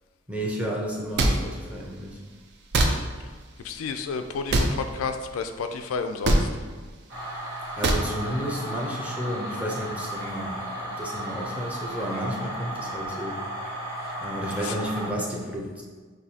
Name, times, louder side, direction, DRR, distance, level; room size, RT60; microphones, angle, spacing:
voice 1, 0.3-2.2 7.8-13.4 14.2-15.8, equal, 5° right, -3 dB, 0.6 m, -32 dB
sound 1, 1.2-1.3 2.7-2.9 4.5-4.7 6.2-6.4 7.8-8.0, right 1 dB, 60° right, 0.5 m, -20 dB
voice 2, 3.6-6.5 14.7-14.8, left 5 dB, 85° left, 7 dB, 0.3 m, -31 dB
sound 2, 7.1-15.1, right 1 dB, 85° right, 1.3 m, -34 dB
6.0 x 2.7 x 2.8 m, 1.4 s
head